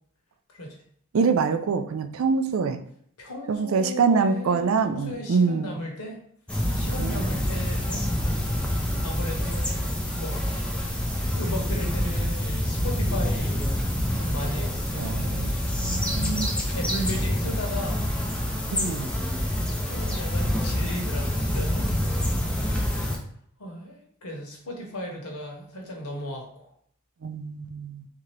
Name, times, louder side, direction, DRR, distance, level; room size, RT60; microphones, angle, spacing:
voice 1, 1.1-2.8 3.5-5.8 7.0-7.4 14.9-15.5 15.8-16.6 18.7-19.1 27.2-28.1, right 5 dB, 65° right, 9 dB, 0.4 m, -25 dB
voice 2, 3.2-6.2 6.7-8.2 9.0-9.7 10.1-11.0 11.3-13.7 14.1-14.8 15.3-15.7 16.0-18.0 19.9-22.0 23.6-26.7, equal, 80° left, 0 dB, 1.1 m, -36 dB
sound 1, 6.5-23.2, left 1 dB, 5° left, 0.4 m, -27 dB
3.7 x 2.8 x 3.2 m, 0.65 s
head